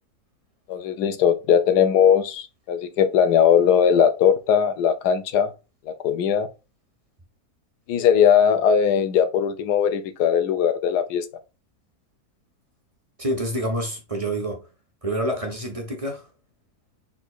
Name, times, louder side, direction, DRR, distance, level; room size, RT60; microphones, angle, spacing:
voice 1, 0.7-5.5 5.9-6.5 7.9-11.2, left 8 dB, 90° left, 1.3 m, -19 dB
voice 2, 13.2-14.6 15.0-16.3, right 1 dB, 25° right, 1.0 m, -27 dB
4.3 x 4.0 x 2.4 m
omnidirectional pair, 1.7 m